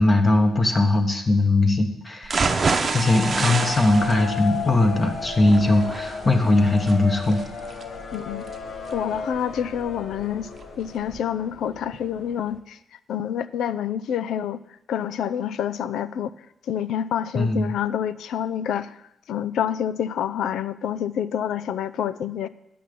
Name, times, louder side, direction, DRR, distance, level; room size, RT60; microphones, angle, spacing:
voice 1, 0.0-2.4 2.9-7.4 17.3-17.7, left 2 dB, 30° left, 4 dB, 1.4 m, -20 dB
sound 1, 2.2-10.2 10.6-10.7 11.1-11.2, right 4 dB, 35° right, 0.9 m, -28 dB
sound 2, 2.5-12.6, left 5 dB, 65° left, 1.1 m, -34 dB
voice 2, 8.1-8.5 8.9-10.5 10.8-12.8 13.1-14.6 14.9-16.3 16.6-19.0 19.3-22.5, left 9 dB, 80° left, 16 dB, 0.5 m, -27 dB
10.0 x 5.8 x 8.5 m, 0.84 s
cardioid pair, 90°, 0 cm